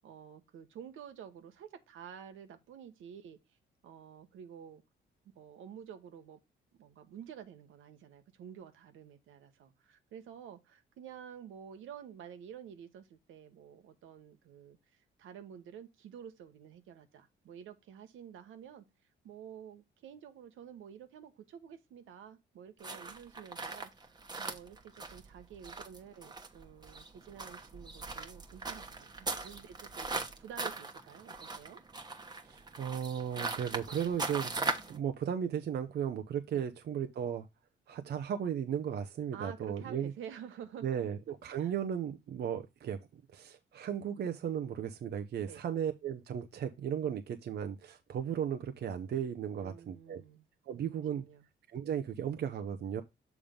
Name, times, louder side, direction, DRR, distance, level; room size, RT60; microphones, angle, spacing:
voice 1, 0.0-3.4 3.8-4.8 5.3-6.4 6.8-18.8 19.2-28.8 29.2-31.8 36.5-36.7 39.3-41.1 41.5-41.7 45.4-45.6 49.6-50.4 50.9-51.4, right 8 dB, 85° right, 1.2 m, -50 dB
sound 1, 22.8-35.0, right 3 dB, 20° right, 1.2 m, -40 dB
voice 2, 32.4-37.5 37.9-40.1 40.8-50.2 50.7-51.2 51.7-53.0, right 8 dB, 55° right, 0.7 m, -36 dB
7.1 x 3.7 x 5.1 m
cardioid pair, 90°, 20 cm